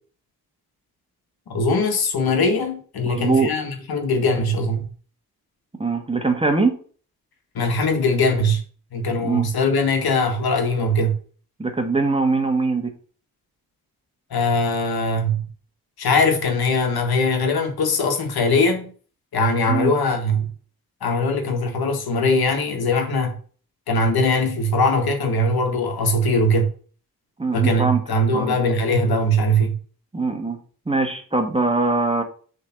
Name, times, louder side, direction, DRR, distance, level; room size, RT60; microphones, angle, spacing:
voice 1, 1.5-4.9 7.5-8.6 8.9-11.2 14.3-15.5 16.0-18.9 19.3-20.5 21.0-23.4 23.9-26.7 27.5-29.8, left 1 dB, 85° left, 1.7 m, -21 dB
voice 2, 3.0-3.5 5.8-6.8 9.2-9.5 11.6-12.9 19.7-19.9 27.4-28.0 28.3-28.5 30.1-30.6 30.9-32.2, right 3 dB, 15° right, 1.4 m, -22 dB
7.1 x 3.9 x 5.9 m
cardioid pair, 90°, 36 cm